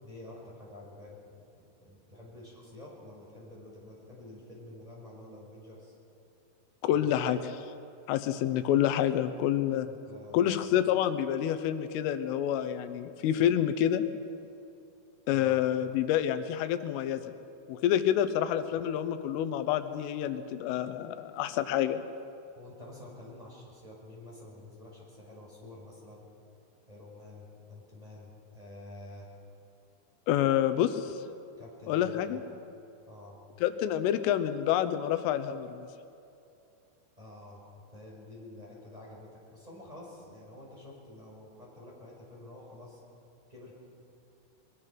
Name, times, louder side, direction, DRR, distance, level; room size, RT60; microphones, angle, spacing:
voice 1, 0.0-5.9 6.9-7.1 9.8-10.7 15.3-15.6 22.5-26.2 26.9-29.3 31.6-32.4 33.1-33.5 37.2-37.6 37.9-43.0 43.5-43.7, left 1 dB, 10° right, -4 dB, 5.1 m, -49 dB
voice 2, 6.8-7.4 8.1-9.9 10.3-14.1 15.3-17.2 17.7-22.0 30.3-31.1 31.9-32.4 33.6-35.9, left 10 dB, 90° left, 10 dB, 3.5 m, -28 dB
23.0 x 22.0 x 6.0 m, 2.6 s
omnidirectional pair, 5.6 m